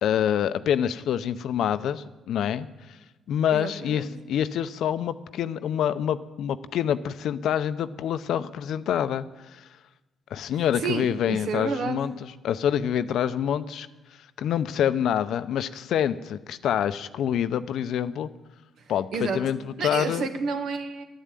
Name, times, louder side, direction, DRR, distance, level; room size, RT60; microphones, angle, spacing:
voice 1, 0.0-2.7 3.3-9.3 9.5-9.7 10.3-12.1 12.4-13.9 14.4-18.3 18.9-20.3, left 9 dB, 75° left, 13 dB, 0.7 m, -26 dB
voice 2, 3.5-4.1 10.5-12.0 18.8-19.5 19.8-21.0, right 5 dB, 70° right, 6 dB, 1.8 m, -31 dB
11.5 x 10.5 x 9.1 m, 1.1 s
cardioid pair, 90°, 0 cm